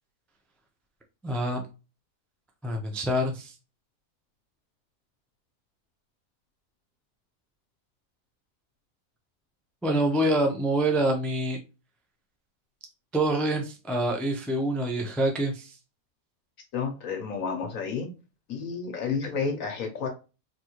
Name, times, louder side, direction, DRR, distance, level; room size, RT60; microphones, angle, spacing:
voice 1, 1.2-1.6 2.6-3.5 9.8-11.6 13.1-15.8, right 1 dB, ahead, 0.4 m, -26 dB
voice 2, 16.7-18.1 18.5-20.1, left 5 dB, 75° left, 1.3 m, -31 dB
4.4 x 2.9 x 3.0 m
omnidirectional pair, 1.4 m